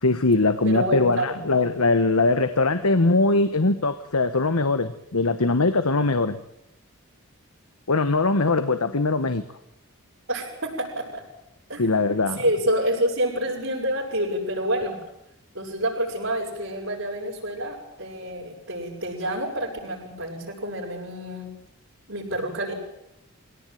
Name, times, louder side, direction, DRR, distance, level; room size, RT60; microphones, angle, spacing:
voice 1, 0.0-6.4 7.9-9.4 11.8-12.4, left 3 dB, 90° left, 10 dB, 1.2 m, -21 dB
voice 2, 0.6-1.4 8.8-9.0 10.3-11.2 11.7-11.8 12.3-15.0 15.5-21.5 22.1-22.7, right 1 dB, 60° right, -7 dB, 6.8 m, -28 dB
23.0 x 18.0 x 9.3 m, 0.82 s
head